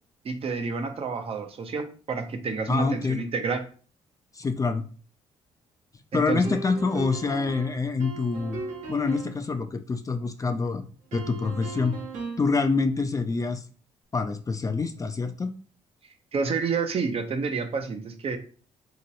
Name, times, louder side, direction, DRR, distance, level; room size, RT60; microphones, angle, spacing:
voice 1, 0.2-3.6 6.1-6.6 16.3-18.4, right 4 dB, 45° right, 7 dB, 0.6 m, -29 dB
voice 2, 2.7-3.2 4.3-4.8 6.1-8.6 8.9-10.8 11.1-12.0 12.4-13.6 14.1-15.5, left 4 dB, 25° left, 8 dB, 0.3 m, -26 dB
sound 1, 6.4-9.4 11.1-12.5, right 3 dB, 65° right, 0.9 m, -37 dB
2.9 x 2.9 x 2.6 m, 0.40 s
supercardioid pair, 65°, 14 cm